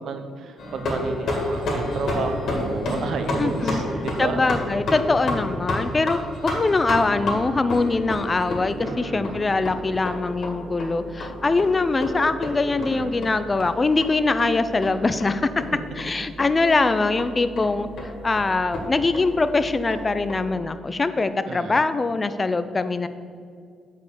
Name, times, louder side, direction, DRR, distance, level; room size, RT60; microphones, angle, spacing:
voice 1, 0.0-4.4 8.8-9.4 12.8-13.3 21.5-21.8, right 4 dB, 65° right, 7 dB, 0.9 m, -32 dB
sound 1, 0.6-20.4, left 1 dB, 65° left, 2.0 m, -31 dB
voice 2, 3.4-3.8 4.2-15.5 16.0-23.1, left 3 dB, 25° left, 12 dB, 0.5 m, -23 dB
6.8 x 5.1 x 6.8 m, 2.2 s
cardioid pair, 90°, 0 cm